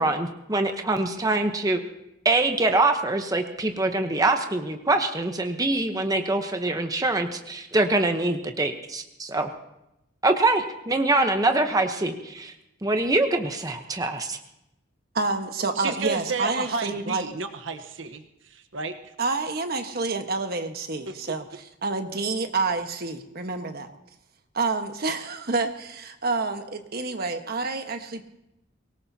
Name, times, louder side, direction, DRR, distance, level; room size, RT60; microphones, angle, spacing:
voice 1, 0.0-1.8 2.2-9.5 10.2-12.5 12.8-14.4, right 2 dB, 20° right, 5 dB, 0.9 m, -24 dB
voice 2, 15.1-17.2 19.2-23.9 24.5-28.2, right 3 dB, 50° right, 6 dB, 1.4 m, -28 dB
voice 3, 15.8-18.2 18.5-18.9 21.1-21.2, right 4 dB, 75° right, 6 dB, 1.1 m, -31 dB
23.5 x 18.5 x 2.8 m, 0.88 s
head